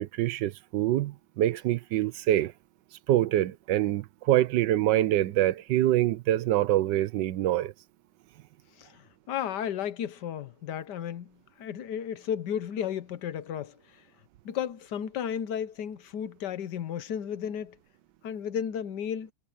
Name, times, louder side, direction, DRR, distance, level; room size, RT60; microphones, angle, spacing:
voice 1, 0.0-2.5 3.1-7.7, right 13 dB, 85° right, 1.3 m, -25 dB
voice 2, 8.8-14.0 14.4-17.8 18.2-19.3, left 9 dB, 75° left, 1.5 m, -34 dB
omnidirectional pair, 1.9 m